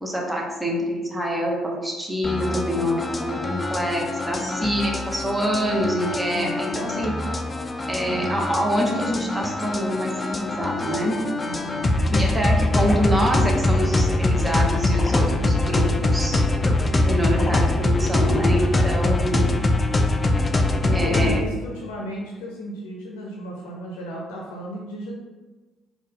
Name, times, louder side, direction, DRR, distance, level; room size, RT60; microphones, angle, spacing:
voice 1, 0.0-2.9 3.2-7.1 7.9-11.2 12.1-16.4 17.0-19.4 20.9-21.5, equal, 10° right, -2 dB, 1.0 m, -26 dB
sound 1, 2.2-21.4, left 2 dB, 30° left, 0.4 m, -23 dB
voice 2, 2.7-3.1 6.3-6.7 8.1-8.2 11.4-11.8 17.3-17.8 19.3-19.7 20.8-25.1, equal, 80° left, -2 dB, 0.6 m, -34 dB
4.2 x 2.3 x 3.7 m, 1.2 s
hypercardioid pair, 55°, 0 cm